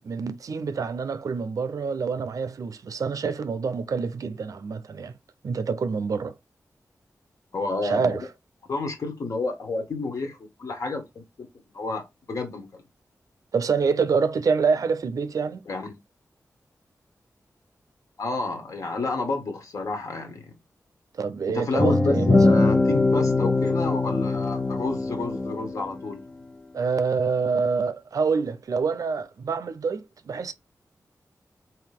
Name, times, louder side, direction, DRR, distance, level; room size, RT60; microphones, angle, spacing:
voice 1, 0.0-5.1 5.4-6.3 7.8-8.2 13.5-15.6 21.1-22.4 26.7-30.5, right 5 dB, 70° right, 0.5 m, -26 dB
voice 2, 7.5-8.2 8.7-11.2 11.7-12.8 15.7-15.9 18.2-20.4 21.5-26.2, left 3 dB, 65° left, 1.6 m, -30 dB
sound 1, 21.8-26.0, left 2 dB, 15° left, 0.4 m, -22 dB
4.8 x 3.1 x 3.5 m
wide cardioid pair, 145°, 6 cm